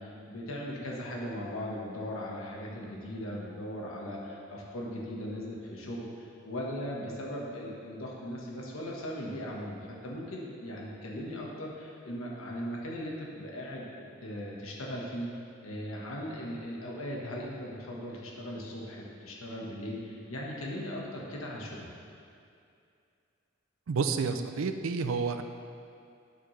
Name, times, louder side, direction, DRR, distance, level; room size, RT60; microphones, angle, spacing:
voice 1, 0.0-15.3 15.6-21.9, equal, 85° left, -3 dB, 1.4 m, -38 dB
voice 2, 23.9-25.4, right 5 dB, 85° right, 8 dB, 0.5 m, -30 dB
11.0 x 5.8 x 3.2 m, 2.5 s
head